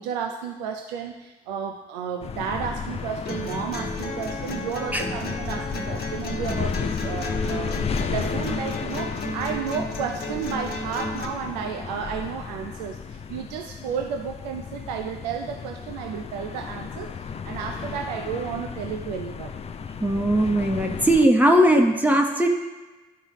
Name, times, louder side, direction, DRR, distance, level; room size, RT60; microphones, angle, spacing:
voice 1, 0.0-17.1 17.4-19.6, right 7 dB, 85° right, 4 dB, 0.5 m, -32 dB
sound 1, 2.2-21.3, left 6 dB, 30° left, 0.4 m, -33 dB
sound 2, 3.3-11.2, left 1 dB, 50° left, 1.2 m, -33 dB
voice 2, 20.0-22.5, right 1 dB, 10° right, 2 dB, 1.0 m, -19 dB
11.0 x 3.9 x 3.0 m, 1.2 s
hypercardioid pair, 55°, 21 cm